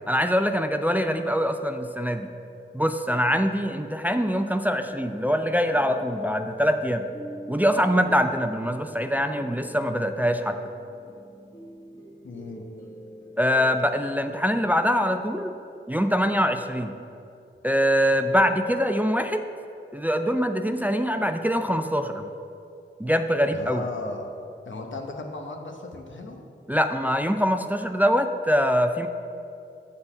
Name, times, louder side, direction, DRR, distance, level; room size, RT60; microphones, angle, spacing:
voice 1, 0.1-2.3 2.7-7.0 7.5-10.6 13.4-15.5 15.9-16.9 17.6-19.5 19.9-22.3 23.0-23.8 26.7-29.1, equal, 10° right, 7 dB, 0.4 m, -23 dB
sound 1, 4.8-15.3, right 1 dB, 15° left, 1.7 m, -44 dB
voice 2, 12.2-12.6 23.5-24.3 24.7-26.4, left 2 dB, 70° left, 2 dB, 0.9 m, -36 dB
7.9 x 4.0 x 6.9 m, 2.6 s
cardioid pair, 50°, 20 cm